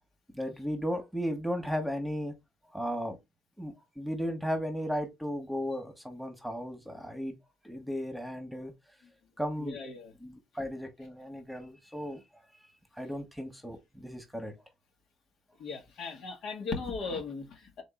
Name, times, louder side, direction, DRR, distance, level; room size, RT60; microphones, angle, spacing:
voice 1, 0.3-2.3 2.7-3.2 3.6-7.4 7.6-8.7 9.4-9.8 10.2-12.2 13.0-14.5, equal, ahead, 1.4 m, -35 dB
voice 2, 9.6-10.1 15.6-17.8, left 4 dB, 70° left, 1.6 m, -37 dB
3.8 x 3.6 x 3.8 m
cardioid pair, 105°, 0 cm